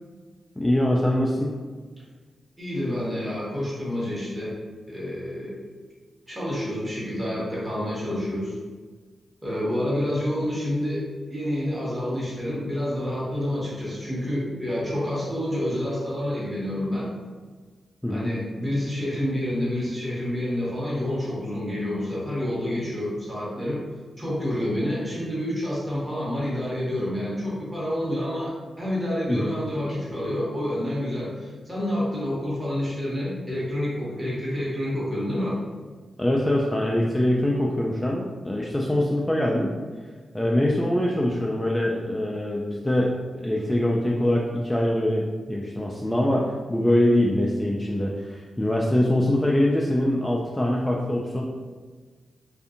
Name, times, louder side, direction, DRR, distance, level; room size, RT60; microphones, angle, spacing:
voice 1, 0.6-1.5 18.0-18.3 29.3-29.5 36.2-39.7 40.3-51.4, left 1 dB, 10° left, -3 dB, 0.3 m, -23 dB
voice 2, 2.6-4.5 4.9-5.6 6.3-8.6 9.4-17.1 18.1-23.8 24.2-28.5 28.8-35.6, left 1 dB, 20° right, -7 dB, 1.2 m, -28 dB
2.6 x 2.5 x 2.5 m, 1.4 s
cardioid pair, 65°, 0 cm